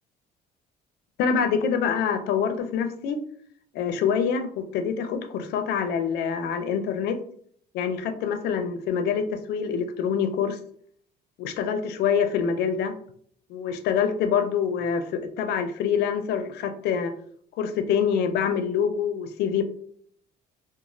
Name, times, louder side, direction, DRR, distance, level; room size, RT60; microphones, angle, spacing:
voice 1, 1.2-3.2 3.7-7.2 7.7-10.6 11.4-12.9 13.5-17.1 17.6-19.6, left 7 dB, 75° left, 9 dB, 0.4 m, -25 dB
2.5 x 2.3 x 2.9 m, 0.62 s
cardioid pair, 110°, 17 cm